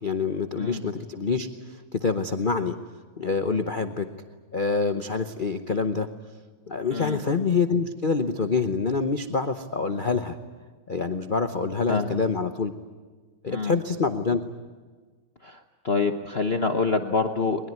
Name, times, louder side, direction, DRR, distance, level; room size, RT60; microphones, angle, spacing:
voice 1, 0.0-2.8 3.2-4.1 4.5-6.1 6.7-10.4 10.9-12.7 13.4-14.4, left 4 dB, 65° left, 8 dB, 0.5 m, -26 dB
voice 2, 15.8-17.7, left 4 dB, 40° left, 5 dB, 1.0 m, -26 dB
22.0 x 21.5 x 9.5 m, 1.4 s
omnidirectional pair, 2.3 m